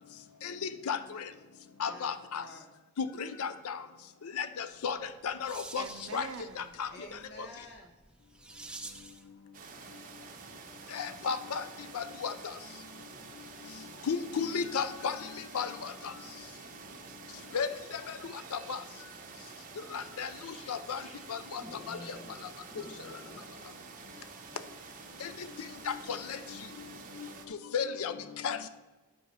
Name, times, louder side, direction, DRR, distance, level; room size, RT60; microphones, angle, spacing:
voice 1, 0.4-1.0 1.8-2.4 3.0-3.8 4.4-5.0 5.2-5.8 6.1-6.3 6.6-6.9 10.9-11.6 11.9-12.3 14.1-15.2 15.5-15.7 17.5-17.7 18.7-18.8 19.9-20.3 20.7-21.0 21.3-21.6 21.9-22.0 25.9-26.2 27.7-28.1 28.4-28.7, left 6 dB, 80° left, 12 dB, 0.5 m, -33 dB
voice 2, 1.8-2.8 6.9-8.0, left 1 dB, 50° left, 2 dB, 1.4 m, -52 dB
sound 1, 4.9-9.3, right 2 dB, 5° right, 0.4 m, -49 dB
voice 3, 5.8-6.7 16.4-17.2 18.3-18.8, right 5 dB, 60° right, 12 dB, 0.5 m, -47 dB
sound 2, 9.5-27.5, right 4 dB, 35° right, 0.9 m, -49 dB
voice 4, 20.4-21.2 21.6-23.5, left 2 dB, 30° left, 3 dB, 1.0 m, -50 dB
10.0 x 4.7 x 6.6 m, 1.1 s
head